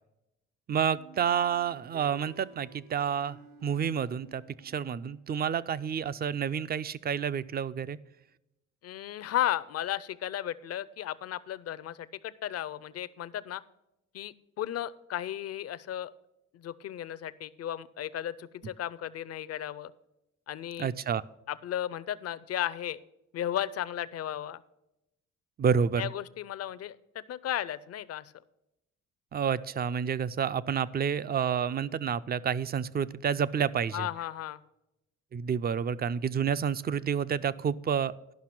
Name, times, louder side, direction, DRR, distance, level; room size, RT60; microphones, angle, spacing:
voice 1, 0.7-8.0 20.8-21.2 25.6-26.0 29.3-34.1 35.3-38.1, right 7 dB, 30° right, 17 dB, 0.4 m, -29 dB
sound 1, 0.9-5.6, right 5 dB, 65° right, 1.1 m, -54 dB
voice 2, 8.8-13.6 14.1-16.1 16.5-19.9 20.5-20.9 21.5-23.0 23.3-24.6 26.0-28.3 33.9-34.6, left 11 dB, 55° left, 17 dB, 0.5 m, -35 dB
11.5 x 5.7 x 5.9 m, 0.90 s
cardioid pair, 90°, 30 cm